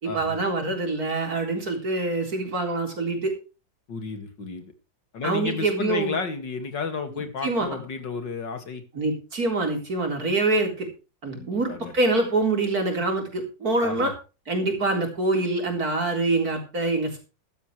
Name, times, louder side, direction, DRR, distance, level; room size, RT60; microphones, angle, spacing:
voice 1, 0.0-3.3 5.2-6.2 7.4-7.7 8.9-10.9 11.2-14.1 14.5-17.2, right 2 dB, 55° right, 3 dB, 4.2 m, -25 dB
voice 2, 3.9-4.7 5.1-8.8 11.3-11.9 13.8-14.1, left 4 dB, 75° left, 7 dB, 2.8 m, -32 dB
14.5 x 12.0 x 3.2 m, 0.32 s
omnidirectional pair, 2.0 m